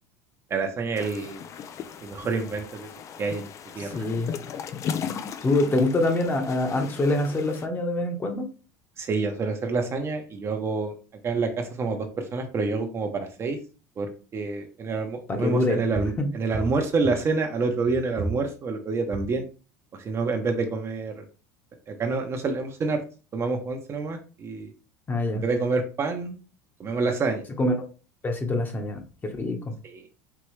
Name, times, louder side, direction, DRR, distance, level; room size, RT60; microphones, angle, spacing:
voice 1, 0.5-1.4 2.0-2.9 3.2-3.5 3.7-4.0 9.0-10.9 11.2-13.6 14.0-19.4 19.9-21.2 21.9-23.0 23.3-24.7 25.3-26.4 26.8-27.4 29.8-30.0, right 4 dB, 35° right, 4 dB, 0.9 m, -27 dB
sound 1, 1.0-7.7, left 7 dB, 40° left, 0.5 m, -37 dB
voice 2, 3.8-4.3 5.4-8.5 15.3-15.9 16.2-16.3 25.1-25.4 27.6-27.8 28.2-29.0 29.4-29.7, left 2 dB, 25° left, 3 dB, 1.2 m, -25 dB
4.7 x 3.0 x 3.2 m, 0.35 s
supercardioid pair, 100°, 8 cm